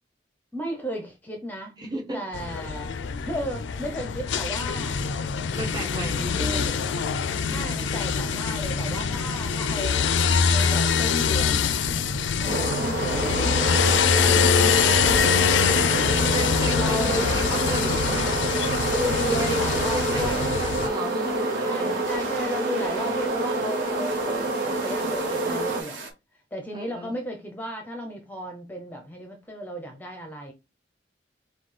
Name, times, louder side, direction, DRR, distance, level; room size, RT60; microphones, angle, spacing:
voice 1, 0.5-1.8 2.1-2.9 3.2-5.0 6.3-6.8 7.5-10.2 10.4-11.9 12.4-13.7 14.6-15.3 16.7-17.3 18.8-20.5 21.6-26.0 26.3-30.5, equal, 10° left, 0.7 m, -34 dB
voice 2, 1.8-2.3 5.6-6.6 7.5-8.0 14.2-14.6 16.3-18.5 19.2-19.6 19.9-22.0 26.7-27.1, right 1 dB, 25° right, 1.0 m, -35 dB
sound 1, 2.3-20.9, left 6 dB, 75° left, 0.4 m, -24 dB
sound 2, 12.5-25.8, right 2 dB, 55° right, 1.4 m, -27 dB
sound 3, 15.5-26.1, right 3 dB, 85° right, 1.0 m, -38 dB
5.7 x 2.3 x 3.2 m
head